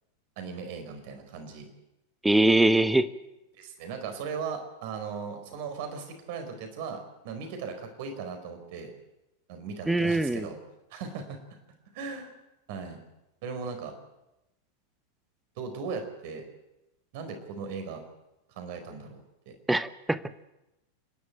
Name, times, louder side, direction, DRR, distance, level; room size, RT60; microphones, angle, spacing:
voice 1, 0.4-1.7 3.6-8.9 9.5-10.6 10.9-11.6 11.9-12.3 12.7-13.0 13.4-13.9 15.6-16.4 17.1-18.0 18.5-19.6, right 5 dB, 50° right, 6 dB, 4.6 m, -38 dB
voice 2, 2.2-3.1 9.9-10.5 19.7-20.2, right 1 dB, 5° right, 15 dB, 1.0 m, -22 dB
28.5 x 11.0 x 9.2 m, 0.95 s
figure-of-eight pair, 90°, 0 cm